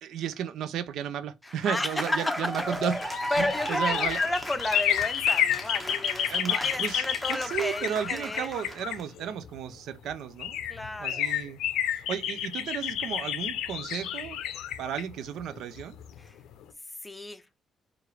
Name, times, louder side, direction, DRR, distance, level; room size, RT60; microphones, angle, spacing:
voice 1, 0.0-3.0 3.4-4.2 6.3-10.6 11.0-11.6 11.9-14.4 14.8-16.0, right 9 dB, 80° right, 0.4 m, -34 dB
voice 2, 1.4-2.2 3.3-8.5 10.7-11.4 16.2-16.4 17.0-17.4, left 2 dB, 15° left, 0.6 m, -32 dB
Cheering / Applause, 1.5-9.0, equal, 5° right, 1.0 m, -36 dB
sound 1, 2.7-9.5 10.1-10.2 10.4-16.2 16.5-16.6, left 10 dB, 90° left, 0.5 m, -30 dB
4.7 x 2.5 x 3.2 m
cardioid pair, 90°, 0 cm